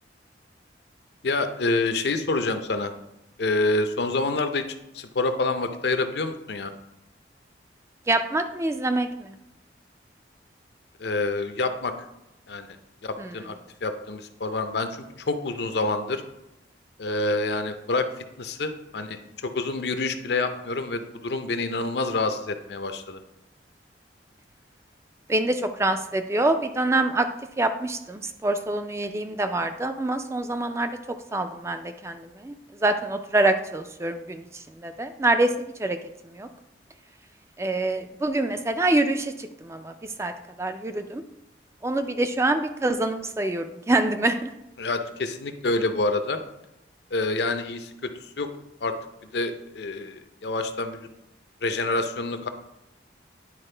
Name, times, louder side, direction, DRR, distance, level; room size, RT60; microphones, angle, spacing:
voice 1, 1.2-2.9 3.4-4.6 4.9-6.7 11.0-11.9 12.5-12.8 13.0-13.5 13.8-16.2 17.0-23.2 44.8-46.4 47.1-48.1 48.4-48.5 48.8-48.9 49.3-51.0 51.6-52.5, left 2 dB, 70° left, 8 dB, 0.6 m, -27 dB
voice 2, 8.1-9.4 13.2-13.3 25.3-27.3 27.6-30.9 31.3-32.5 32.8-35.5 35.8-36.0 36.3-36.5 37.6-40.3 40.6-41.2 41.8-44.5, right 2 dB, 15° right, 8 dB, 0.3 m, -25 dB
9.8 x 4.4 x 3.3 m, 0.89 s
head